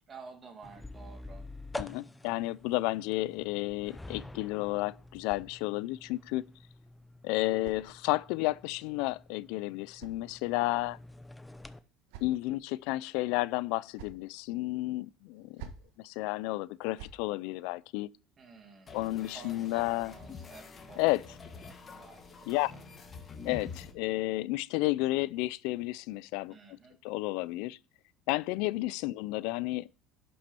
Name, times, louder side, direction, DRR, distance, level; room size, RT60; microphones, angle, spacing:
voice 1, 0.1-1.5 10.6-10.8 18.4-21.4 21.7-22.9 26.5-27.0, right 5 dB, 30° right, 2.4 m, -52 dB
sound 1, 0.6-11.8, left 2 dB, 10° left, 0.6 m, -48 dB
voice 2, 1.8-6.4 7.2-11.0 12.2-15.7 16.0-18.1 18.9-20.1 21.0-21.2 22.5-22.7 23.4-26.5 27.0-27.8 28.3-29.9, left 19 dB, 75° left, 0.3 m, -32 dB
sound 2, 4.9-6.0 7.0-8.5 9.4-10.8 11.6-12.7 13.6-14.3 15.3-16.0 16.7-17.3, right 7 dB, 80° right, 1.4 m, -52 dB
sound 3, 18.9-23.9, left 5 dB, 30° left, 1.7 m, -47 dB
11.0 x 6.2 x 4.3 m
cardioid pair, 120°, 0 cm